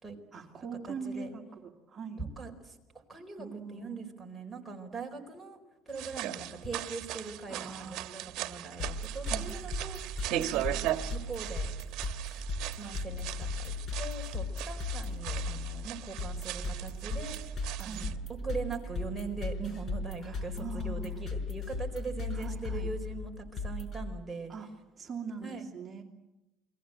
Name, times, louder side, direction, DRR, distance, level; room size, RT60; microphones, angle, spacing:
voice 1, 0.3-2.2 3.4-4.0 7.5-8.2 9.2-9.5 13.1-13.2 17.8-18.1 20.2-21.2 22.3-22.9 24.5-24.7 25.0-26.0, right 5 dB, 25° right, 1 dB, 2.7 m, -42 dB
voice 2, 0.9-1.3 2.2-2.8 3.1-5.6 5.9-10.8 11.1-11.7 12.8-17.4 17.8-18.2 18.4-24.5 25.4-25.6, right 4 dB, 5° right, 0 dB, 4.4 m, -41 dB
sound 1, 5.9-18.2, right 13 dB, 65° right, 1.4 m, -38 dB
sound 2, 8.8-24.0, left 2 dB, 40° left, 5.1 m, -37 dB
29.5 x 22.0 x 7.9 m, 0.98 s
cardioid pair, 135°, 0 cm